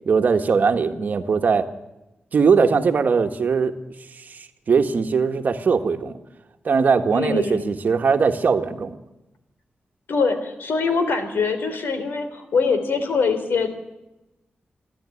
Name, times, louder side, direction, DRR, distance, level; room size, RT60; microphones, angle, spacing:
voice 1, 0.0-1.7 2.3-3.7 4.1-6.2 6.6-9.0, right 5 dB, 55° right, 7 dB, 1.5 m, -20 dB
voice 2, 7.1-7.7 10.1-13.7, left 4 dB, 85° left, 9 dB, 3.5 m, -23 dB
28.5 x 11.5 x 9.9 m, 0.97 s
wide cardioid pair, 170°, 4 cm